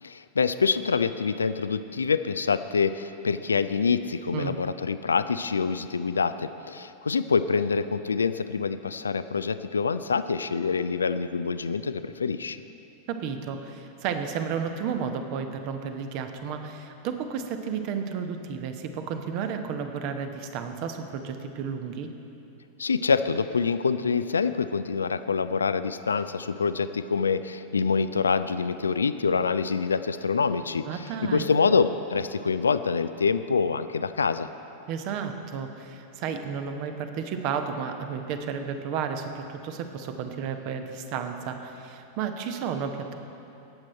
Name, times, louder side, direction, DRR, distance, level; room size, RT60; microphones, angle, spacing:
voice 1, 0.0-12.6 22.8-30.9 31.2-34.5, left 5 dB, 75° left, 12 dB, 0.3 m, -26 dB
voice 2, 13.1-22.1 30.9-31.5 34.9-43.2, right 6 dB, 45° right, 7 dB, 0.9 m, -32 dB
18.0 x 7.6 x 4.3 m, 2.8 s
figure-of-eight pair, 90°, 0 cm